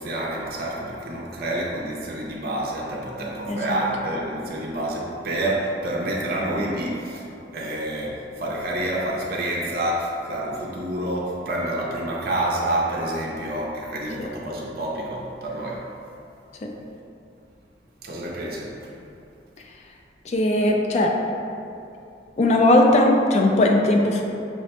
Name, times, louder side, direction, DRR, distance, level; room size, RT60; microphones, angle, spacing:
voice 1, 0.0-7.3 7.5-15.9 18.0-18.9, right 1 dB, 55° right, -4 dB, 0.5 m, -28 dB
voice 2, 3.5-3.8 14.2-14.3 16.6-16.7 20.3-21.2 22.4-24.2, left 1 dB, 35° left, 1 dB, 0.3 m, -19 dB
5.8 x 2.1 x 2.8 m, 2.6 s
head